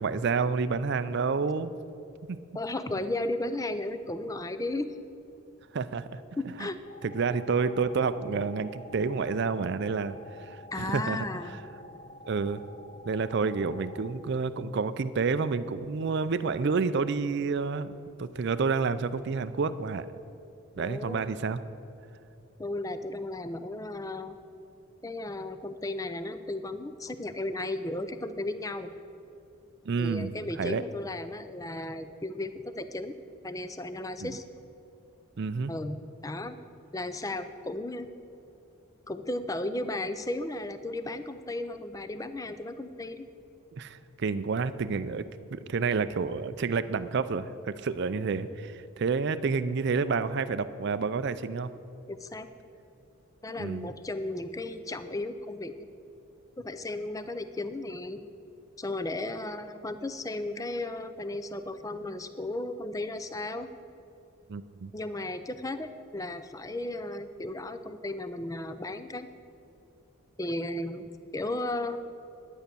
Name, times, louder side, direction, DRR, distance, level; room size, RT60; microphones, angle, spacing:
voice 1, 0.0-1.7 2.3-2.4 5.7-6.2 6.6-6.7 7.0-11.3 12.3-12.6 13.1-17.9 18.2-20.1 20.8-21.6 29.9-30.3 30.6-30.8 34.2-34.4 35.4-35.7 43.8-45.2 45.5-51.7 53.6-53.9 64.5-64.9, right 4 dB, 50° right, 12 dB, 0.4 m, -29 dB
voice 2, 2.5-4.9 6.4-6.8 10.7-11.6 20.8-21.2 22.6-24.4 25.0-28.9 30.0-33.1 33.4-34.4 35.7-36.0 36.2-36.6 36.9-38.1 39.1-43.3 52.1-52.5 53.4-55.7 56.6-58.2 58.8-63.7 64.9-69.3 70.4-72.0, left 2 dB, 15° left, 11 dB, 0.5 m, -35 dB
sound 1, 6.8-14.1, left 1 dB, 40° left, 2.2 m, -49 dB
11.5 x 9.2 x 6.8 m, 2.7 s
head